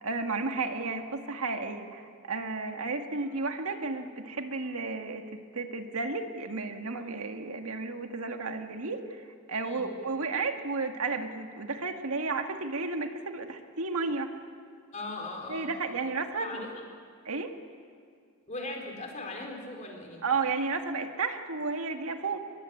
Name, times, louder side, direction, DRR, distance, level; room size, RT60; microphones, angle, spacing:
voice 1, 0.0-14.3 15.5-16.7 17.3-17.5 20.2-22.4, right 3 dB, 75° right, 5 dB, 1.8 m, -33 dB
voice 2, 14.9-15.7 16.4-16.7 18.5-20.2, left 2 dB, 35° left, 1 dB, 4.3 m, -39 dB
23.5 x 22.0 x 8.4 m, 2.3 s
head